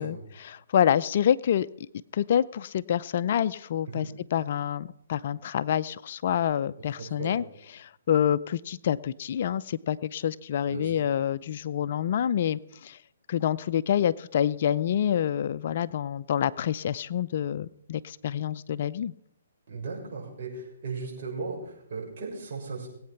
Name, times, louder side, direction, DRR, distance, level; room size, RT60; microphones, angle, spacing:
voice 1, 0.0-1.9 2.1-7.4 7.7-13.0 13.3-19.1, left 9 dB, 50° left, 15 dB, 0.5 m, -27 dB
voice 2, 7.0-7.4 10.7-10.9 19.7-22.9, right 4 dB, 50° right, -2 dB, 6.3 m, -37 dB
20.0 x 8.7 x 5.8 m, 0.73 s
hypercardioid pair, 150°, 0 cm